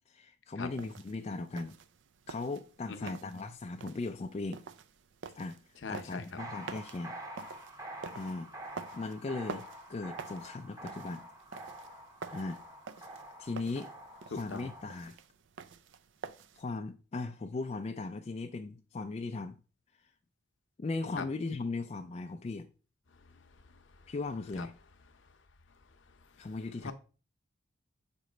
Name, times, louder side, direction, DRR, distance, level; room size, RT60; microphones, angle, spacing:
voice 1, 0.1-1.8 2.3-4.6 5.4-5.6 5.9-7.2 8.1-8.5 8.9-11.2 12.3-12.6 13.4-13.9 14.3-15.2 16.5-19.6 20.8-22.7 24.1-24.7 26.4-26.9, left 3 dB, 30° left, 0.3 m, -38 dB
sound 1, 0.7-16.6, right 5 dB, 60° right, 0.4 m, -49 dB
voice 2, 5.8-6.2 14.3-14.7 21.2-21.3 23.9-24.1 24.6-24.7 26.4-26.5 26.8-26.9, left 4 dB, 60° left, 0.7 m, -40 dB
sound 2, 6.4-15.0, right 1 dB, 15° right, 0.9 m, -47 dB
6.7 x 3.1 x 4.9 m
head